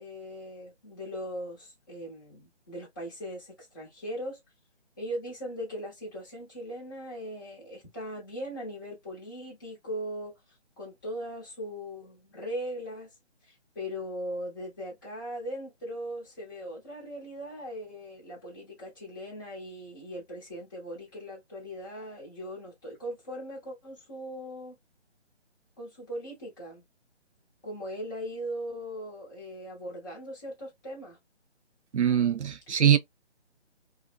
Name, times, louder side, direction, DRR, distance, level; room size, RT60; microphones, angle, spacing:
voice 1, 0.0-4.4 5.0-10.3 10.8-13.1 13.4-24.8 25.8-26.8 27.6-31.2, equal, 15° left, 0.9 m, -39 dB
voice 2, 31.9-33.0, right 9 dB, 70° right, 0.6 m, -22 dB
2.7 x 2.0 x 2.4 m
figure-of-eight pair, 150°, 35 cm